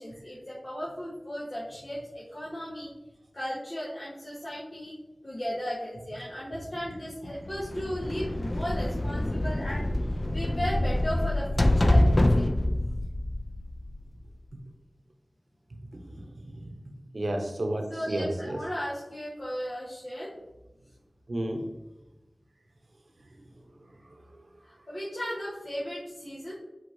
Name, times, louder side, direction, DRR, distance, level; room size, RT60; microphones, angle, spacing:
voice 1, 0.0-2.9 3.3-4.9 5.2-9.8 10.3-12.5 17.9-20.3 24.6-26.5, equal, 70° left, -8 dB, 1.1 m, -36 dB
sound 1, 7.5-14.2, left 1 dB, 45° left, 0.3 m, -26 dB
voice 2, 15.9-16.7 17.1-18.6 21.3-21.7 23.2-24.9, right 1 dB, 80° right, 3 dB, 0.7 m, -34 dB
4.6 x 4.0 x 2.6 m, 0.98 s
wide cardioid pair, 45°, 0 cm